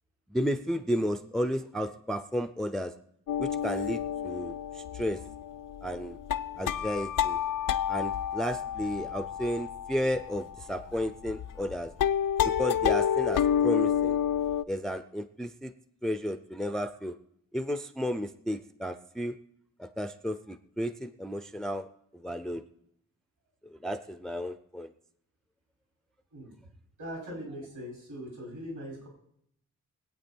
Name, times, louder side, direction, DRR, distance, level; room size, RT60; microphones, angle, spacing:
voice 1, 0.3-2.9 3.4-5.2 5.8-6.2 6.6-7.4 7.9-11.9 12.4-14.2 14.7-15.7 16.0-17.1 17.5-19.3 19.8-21.9 22.1-22.6 23.8-24.9, equal, ahead, 10 dB, 0.4 m, -33 dB
sound 1, 3.3-11.7 12.0-14.6, left 9 dB, 90° left, 0.6 m, -29 dB
voice 2, 27.0-29.1, equal, 65° right, -2 dB, 6.0 m, -40 dB
22.0 x 8.8 x 4.5 m, 0.72 s
wide cardioid pair, 155°, 32 cm